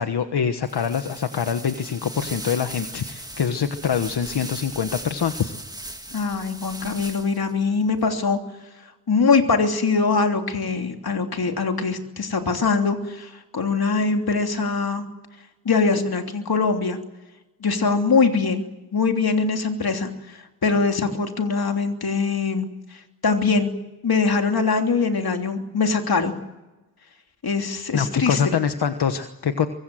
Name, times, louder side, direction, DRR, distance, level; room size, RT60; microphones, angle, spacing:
voice 1, 0.0-5.5 27.9-29.7, left 7 dB, 90° left, 8 dB, 1.4 m, -24 dB
sound 1, 0.6-7.5, right 1 dB, 10° right, 2.3 m, -38 dB
voice 2, 6.1-8.4 9.1-15.0 15.6-17.0 17.6-18.6 18.9-22.7 23.2-23.7 24.0-26.4 27.4-28.5, left 4 dB, 70° left, 4 dB, 3.2 m, -22 dB
25.0 x 22.0 x 7.7 m, 1.1 s
wide cardioid pair, 75°, 38 cm